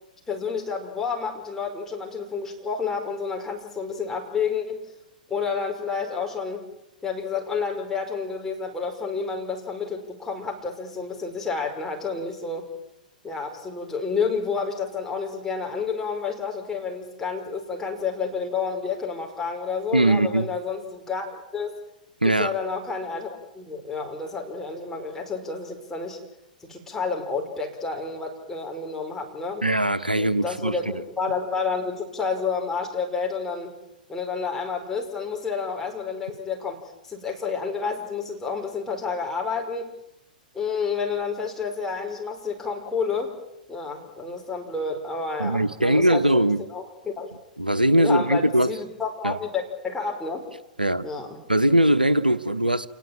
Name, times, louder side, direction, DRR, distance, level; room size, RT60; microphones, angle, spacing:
voice 1, 0.3-4.8 5.3-6.6 7.0-12.7 13.2-21.3 21.5-21.8 22.2-23.3 23.5-26.2 26.6-29.6 30.2-33.7 34.1-39.9 40.5-43.3 43.7-47.3 47.9-50.5 51.0-51.4, left 5 dB, 10° left, 5.1 m, -30 dB
voice 2, 19.9-20.5 22.2-22.5 29.6-30.8 45.4-46.6 47.6-48.7 49.2-49.4 50.8-51.1 51.5-52.9, right 1 dB, 85° right, 0.9 m, -20 dB
28.0 x 19.5 x 9.0 m
figure-of-eight pair, 105°, 5 cm